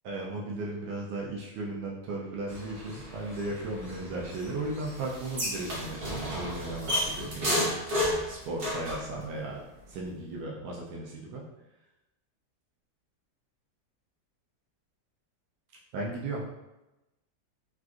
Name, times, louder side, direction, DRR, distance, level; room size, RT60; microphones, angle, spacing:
voice 1, 0.0-7.7 8.3-9.6 9.9-11.4 15.9-16.4, right 2 dB, 85° right, -3 dB, 1.2 m, -36 dB
sound 1, 2.5-9.1, equal, 45° right, 0.9 m, -33 dB
3.7 x 2.5 x 2.3 m, 0.98 s
omnidirectional pair, 1.7 m